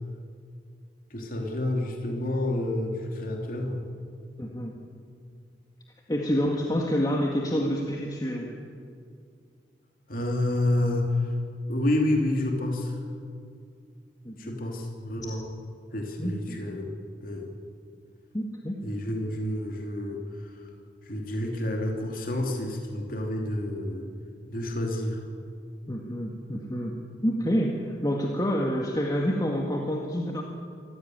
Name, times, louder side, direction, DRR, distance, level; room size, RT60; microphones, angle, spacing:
voice 1, 1.1-3.8 10.1-11.3 11.7-12.9 14.4-15.4 15.9-16.9 17.2-17.5 18.8-20.5 21.1-24.0 24.5-25.2, left 1 dB, 55° left, 1 dB, 3.1 m, -29 dB
voice 2, 4.4-4.8 6.1-8.6 14.3-14.6 16.2-16.6 18.3-18.8 25.9-30.4, equal, 20° left, 0 dB, 1.9 m, -28 dB
25.0 x 16.0 x 9.4 m, 2.3 s
head